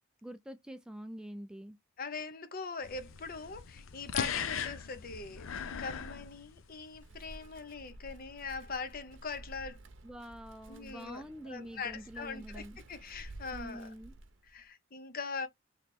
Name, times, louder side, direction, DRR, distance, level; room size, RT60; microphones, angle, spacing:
voice 1, 0.2-1.8 10.0-12.8 13.5-14.1, right 1 dB, 5° right, 0.3 m, -46 dB
voice 2, 2.0-9.8 10.7-13.9 14.5-15.5, left 4 dB, 45° left, 0.7 m, -42 dB
sound 1, 2.8-7.0, left 7 dB, 85° left, 0.5 m, -39 dB
Wind, 6.9-14.6, right 1 dB, 65° right, 0.7 m, -52 dB
3.3 x 2.9 x 4.1 m
head